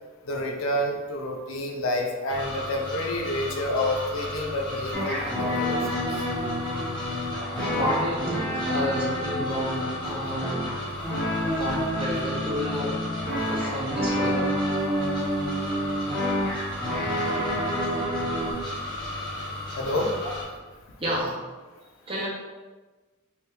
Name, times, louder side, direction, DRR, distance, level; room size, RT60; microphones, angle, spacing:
voice 1, 0.3-6.0 19.8-20.1, left 1 dB, 75° left, 1 dB, 0.5 m, -29 dB
sound 1, 2.3-20.4, left 1 dB, 20° left, 0.9 m, -35 dB
sound 2, 4.9-18.5, equal, 5° left, 1.3 m, -29 dB
voice 2, 7.5-10.7 11.4-13.0 13.5-14.5 21.0-21.4 22.1-22.3, equal, 25° right, -3 dB, 0.7 m, -30 dB
3.3 x 2.5 x 3.2 m, 1.3 s
head